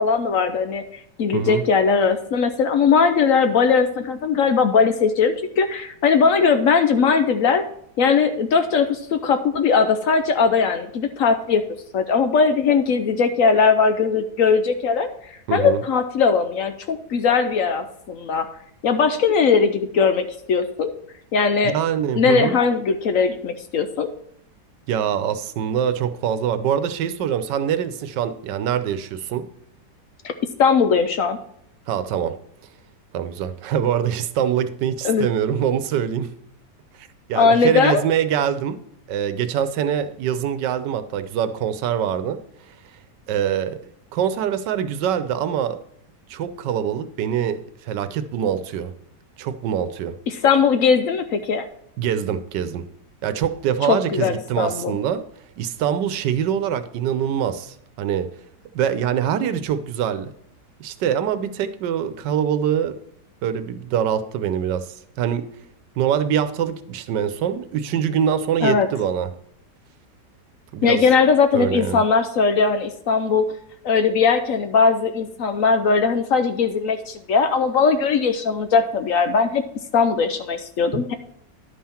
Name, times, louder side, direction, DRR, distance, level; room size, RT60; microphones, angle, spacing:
voice 1, 0.0-7.6 8.0-11.6 11.9-18.5 18.8-20.9 21.3-21.8 22.1-24.1 30.2-30.3 30.6-31.4 35.0-35.3 37.4-38.0 50.3-51.7 53.9-55.0 68.6-68.9 70.8-73.5 73.8-79.6 79.9-81.1, left 5 dB, 65° left, 9 dB, 0.9 m, -19 dB
voice 2, 1.3-1.6 15.5-15.8 21.6-22.5 24.9-29.4 31.9-32.3 33.1-36.3 37.0-38.8 39.1-42.4 43.3-43.8 44.1-45.8 46.3-48.9 49.4-50.2 52.0-52.8 53.2-55.2 55.6-58.3 58.7-60.3 60.8-62.9 63.4-65.4 66.0-69.3 70.7-71.1 71.5-72.0 80.9-81.0, right 9 dB, 90° right, 11 dB, 1.4 m, -24 dB
11.0 x 5.6 x 4.3 m, 0.71 s
omnidirectional pair, 1.8 m